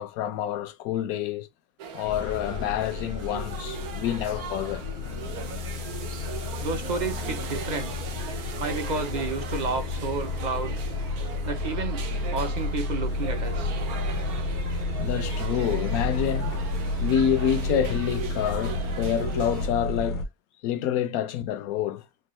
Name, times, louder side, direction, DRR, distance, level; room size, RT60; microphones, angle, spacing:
voice 1, 0.0-1.5 1.9-4.8 14.9-16.6 17.0-20.2 20.6-22.0, left 10 dB, 80° left, 1.0 m, -28 dB
sound 1, 1.8-19.7, right 8 dB, 85° right, 1.3 m, -39 dB
sound 2, 2.0-20.2, left 2 dB, 60° left, 0.5 m, -31 dB
voice 2, 6.6-8.0 8.6-10.8 11.4-12.0 12.3-13.7, right 4 dB, 45° right, 0.6 m, -31 dB
4.4 x 2.4 x 3.0 m
omnidirectional pair, 1.5 m